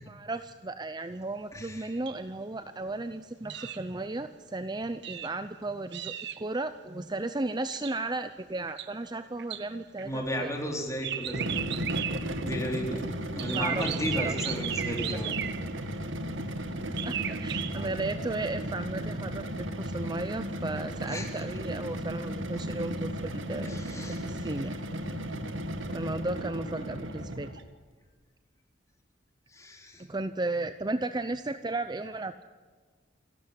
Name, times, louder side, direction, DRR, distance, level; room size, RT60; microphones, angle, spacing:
voice 1, 0.1-10.5 13.5-14.4 15.1-15.2 17.0-23.8 24.1-24.8 25.9-27.6 30.0-32.4, right 2 dB, 20° right, 11 dB, 0.7 m, -35 dB
voice 2, 1.5-1.9 3.5-3.7 10.0-11.5 12.0-12.1 12.4-13.0 13.3-15.3 21.1-21.4 23.6-24.5 29.5-30.0, equal, 15° left, 1 dB, 4.1 m, -34 dB
sound 1, 2.1-2.2 3.5-3.8 5.0-5.4 5.9-6.5 7.7-8.0 8.7-8.9 9.4-9.7 10.0-10.1 11.0-12.4 13.4-15.9 17.0-17.9, right 10 dB, 60° right, 1.0 m, -35 dB
sound 2, 11.2-27.7, equal, 85° right, 2.0 m, -35 dB
29.0 x 12.5 x 9.9 m, 1.5 s
head